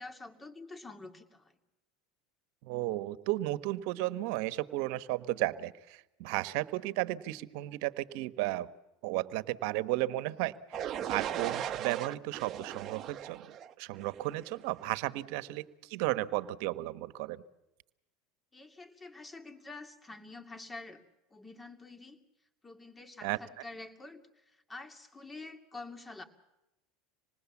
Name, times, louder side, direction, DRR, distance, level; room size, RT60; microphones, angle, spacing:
voice 1, 0.0-1.5 18.5-21.0 21.3-22.2 22.6-26.2, left 3 dB, 15° left, 6 dB, 2.5 m, -47 dB
voice 2, 2.6-8.7 9.0-17.4 23.2-23.4, right 17 dB, 65° right, 14 dB, 1.1 m, -34 dB
sound 1, 10.7-14.6, right 10 dB, 35° right, 1.0 m, -38 dB
26.0 x 20.0 x 7.2 m, 0.94 s
supercardioid pair, 120°, 0 cm